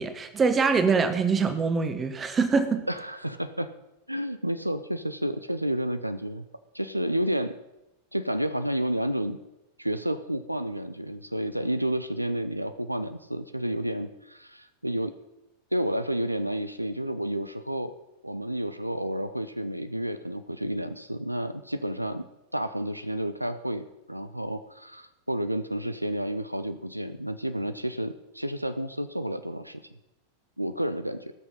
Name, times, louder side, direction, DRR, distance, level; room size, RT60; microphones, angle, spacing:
voice 1, 0.0-2.8, right 5 dB, 20° right, 9 dB, 1.2 m, -24 dB
voice 2, 2.9-3.7 4.1-6.5 6.7-7.5 8.1-9.4 9.8-15.1 15.7-17.9 18.2-22.3 22.5-29.8 30.6-31.3, right 1 dB, 90° right, 12 dB, 0.5 m, -30 dB
18.5 x 6.4 x 5.6 m, 0.93 s
figure-of-eight pair, 90°, 0 cm